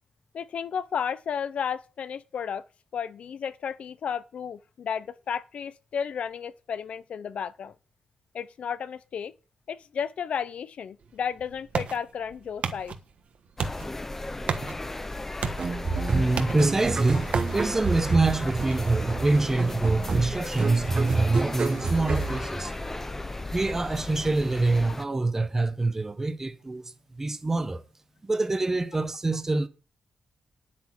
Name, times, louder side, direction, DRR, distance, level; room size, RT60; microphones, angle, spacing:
voice 1, 0.3-2.6 2.9-7.7 8.3-9.3 9.7-12.9, left 7 dB, 70° left, 0.7 m, -33 dB
sound 1, 11.0-22.5, right 6 dB, 70° right, 1.4 m, -37 dB
sound 2, 13.6-25.1, left 2 dB, 15° left, 0.6 m, -35 dB
sound 3, 15.6-23.2, right 4 dB, 40° right, 1.0 m, -29 dB
voice 2, 16.1-22.7 23.5-27.8 28.2-29.7, right 2 dB, 20° right, 1.0 m, -25 dB
10.5 x 8.5 x 6.1 m
wide cardioid pair, 175°, 2 cm